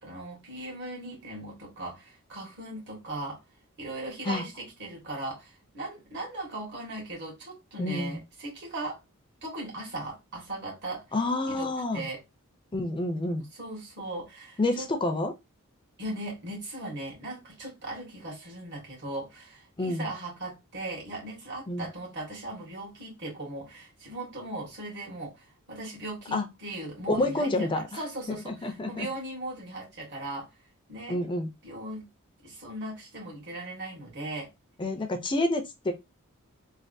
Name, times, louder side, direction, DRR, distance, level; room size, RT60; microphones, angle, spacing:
voice 1, 0.0-3.4 3.8-9.0 9.4-11.0 11.5-12.2 13.6-14.9 16.0-30.5 30.9-31.2 31.6-32.1 32.4-34.5, right 2 dB, 55° right, 1.6 m, -38 dB
voice 2, 7.8-8.2 11.1-12.0 12.7-13.4 14.6-15.3 19.8-20.1 21.7-21.9 26.3-26.5 27.1-28.0 28.3-29.1 31.1-31.5 34.8-35.9, left 2 dB, 20° left, 0.4 m, -28 dB
3.3 x 2.3 x 2.6 m
head